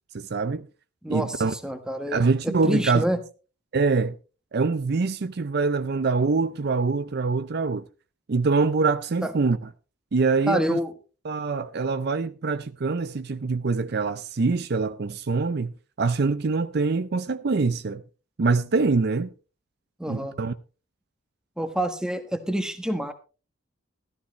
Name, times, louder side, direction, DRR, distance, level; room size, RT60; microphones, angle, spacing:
voice 1, 0.1-0.7 1.1-1.5 2.1-3.0 3.7-4.1 4.5-7.8 8.3-9.6 10.1-10.8 11.3-18.0 18.4-19.3 20.1-20.5, right 4 dB, 50° right, 0.5 m, -24 dB
voice 2, 1.0-3.2 9.2-9.3 10.5-10.9 20.0-20.4 21.6-23.1, equal, 5° right, 1.3 m, -27 dB
14.5 x 13.0 x 3.1 m
head